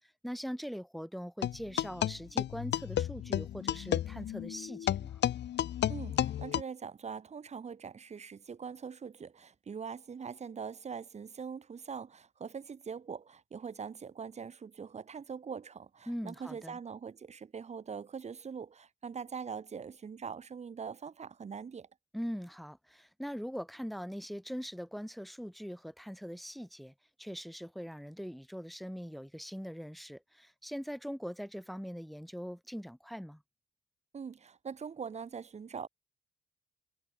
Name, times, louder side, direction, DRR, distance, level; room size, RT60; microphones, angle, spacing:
voice 1, 0.2-5.2 16.1-16.8 22.1-26.9 27.2-33.4, equal, ahead, 3.4 m, -41 dB
sound 1, 1.4-6.6, left 11 dB, 60° left, 1.0 m, -32 dB
voice 2, 5.9-21.9 34.1-35.9, right 6 dB, 35° right, 0.9 m, -43 dB
cardioid pair, 90°, 20 cm